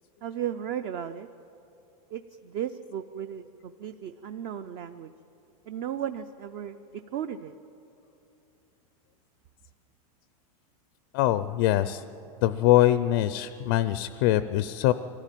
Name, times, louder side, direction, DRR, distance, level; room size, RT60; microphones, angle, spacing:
voice 1, 0.2-1.3 2.1-5.1 5.7-6.8 7.1-7.5, right 9 dB, 30° right, 11 dB, 0.4 m, -35 dB
voice 2, 11.1-12.0 12.4-14.9, left 14 dB, 35° left, 13 dB, 0.4 m, -23 dB
24.0 x 14.5 x 9.1 m, 2.9 s
supercardioid pair, 175°, 19 cm